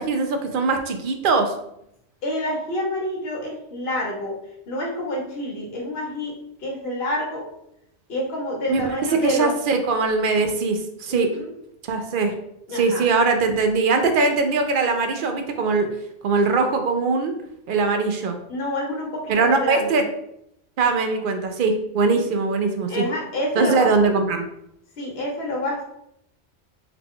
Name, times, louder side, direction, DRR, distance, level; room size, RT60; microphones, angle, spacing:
voice 1, 0.0-1.5 8.7-8.8 9.1-11.4 11.9-12.3 12.7-16.0 16.2-17.3 17.7-18.3 19.3-20.0 20.8-23.1 23.6-24.4, right 4 dB, 60° right, 6 dB, 0.6 m, -21 dB
voice 2, 2.2-4.4 4.7-6.3 6.6-7.5 8.1-9.5 11.1-11.5 12.7-13.1 18.5-20.0 22.9-24.0 25.0-25.9, left 1 dB, 60° left, -2 dB, 1.1 m, -28 dB
3.8 x 2.3 x 3.6 m, 0.78 s
omnidirectional pair, 1.2 m